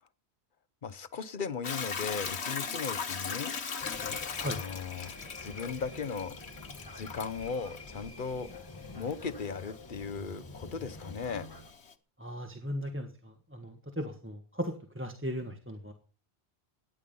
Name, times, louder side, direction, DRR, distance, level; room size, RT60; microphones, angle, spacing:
voice 1, 0.8-3.5 4.4-5.1 5.4-6.4 6.9-11.5, left 5 dB, 50° left, 14 dB, 1.1 m, -37 dB
Hiss / Toilet flush / Trickle dribble, 1.6-11.9, left 6 dB, 85° left, 1.5 m, -40 dB
sound 1, 3.8-11.7, left 3 dB, 20° left, 1.8 m, -47 dB
voice 2, 12.2-15.9, equal, 10° right, 5 dB, 1.6 m, -37 dB
18.0 x 10.5 x 5.5 m, 0.39 s
omnidirectional pair, 1.1 m